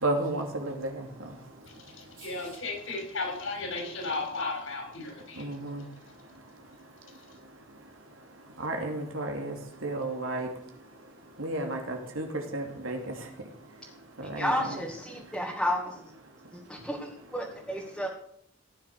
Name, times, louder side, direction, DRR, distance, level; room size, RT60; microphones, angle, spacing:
voice 1, 0.0-1.0 5.4-5.8 8.6-9.5 9.8-10.5 11.4-12.3 12.5-13.1 14.2-14.8, right 2 dB, 85° right, 2 dB, 2.9 m, -32 dB
voice 2, 1.6-5.5, left 3 dB, 75° left, 1 dB, 6.7 m, -35 dB
voice 3, 14.3-16.1 16.5-18.1, equal, 5° left, -2 dB, 2.2 m, -32 dB
16.5 x 10.5 x 6.6 m, 0.67 s
head